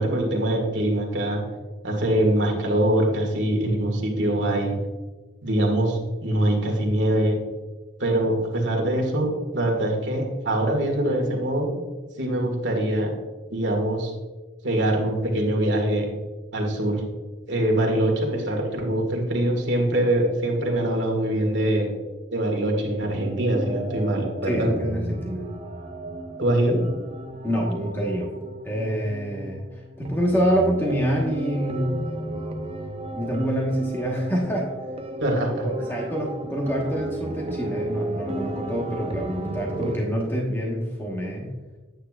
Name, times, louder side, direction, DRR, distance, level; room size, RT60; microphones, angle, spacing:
voice 1, 0.0-1.4 1.8-4.8 5.4-7.4 8.0-11.7 12.2-13.1 13.5-14.1 14.6-16.1 16.5-17.0 17.5-21.9 22.3-24.7 26.4-26.8 35.2-35.7, right 1 dB, 70° right, 1 dB, 1.9 m, -23 dB
sound 1, 23.0-40.0, right 2 dB, 30° right, 0.6 m, -34 dB
voice 2, 24.4-25.5 27.4-28.3 28.6-29.6 30.0-32.0 33.1-34.7 35.6-41.5, equal, 10° left, -2 dB, 1.3 m, -26 dB
9.2 x 9.0 x 2.5 m, 1.2 s
head